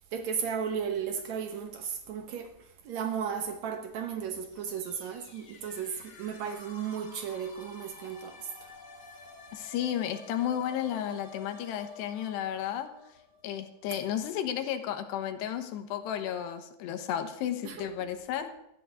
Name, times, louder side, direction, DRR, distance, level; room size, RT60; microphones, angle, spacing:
voice 1, 0.1-2.5 2.8-8.5 17.6-17.8, right 7 dB, 75° right, 1.6 m, -35 dB
sound 1, 4.2-14.0, left 3 dB, 40° left, 1.5 m, -51 dB
voice 2, 9.5-12.9 13.4-18.5, left 10 dB, 80° left, 3.2 m, -33 dB
14.0 x 10.5 x 6.3 m
omnidirectional pair, 4.9 m